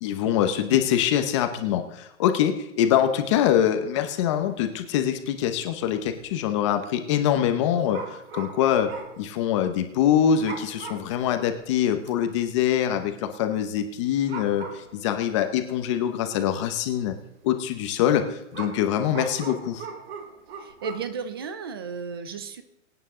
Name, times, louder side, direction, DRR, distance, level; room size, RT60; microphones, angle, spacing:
voice 1, 0.0-8.9 9.2-17.1 17.4-18.3 18.5-19.8, left 10 dB, 25° left, 8 dB, 0.8 m, -24 dB
sound 1, 4.2-4.5 4.8-4.9 5.2-5.4 6.2-6.5 7.9-9.3 9.6-9.7 10.4-11.2 11.6-11.7 12.1-12.6 13.9-14.0 14.3-15.3 16.1-16.2 18.5-21.1, right 4 dB, 50° right, 1.9 m, -39 dB
voice 2, 20.6-22.6, right 6 dB, 20° right, 11 dB, 0.5 m, -34 dB
23.5 x 9.1 x 3.7 m, 0.88 s
hypercardioid pair, 165°, 39 cm